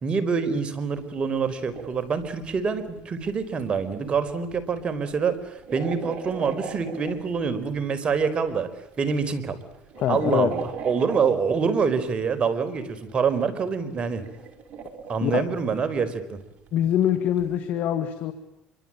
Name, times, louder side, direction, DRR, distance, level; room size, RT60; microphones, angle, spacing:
voice 1, 0.0-8.7 9.0-9.6 10.1-14.2 15.1-16.4, right 5 dB, 40° right, 9 dB, 4.5 m, -26 dB
sound 1, 1.0-1.1 1.3-8.5 8.9-12.5 13.0-17.6, right 5 dB, 55° right, 4.9 m, -40 dB
voice 2, 10.0-10.5 15.2-15.4 16.7-18.3, left 10 dB, 65° left, 8 dB, 2.3 m, -24 dB
27.0 x 24.0 x 8.9 m, 0.86 s
supercardioid pair, 95°, 3 cm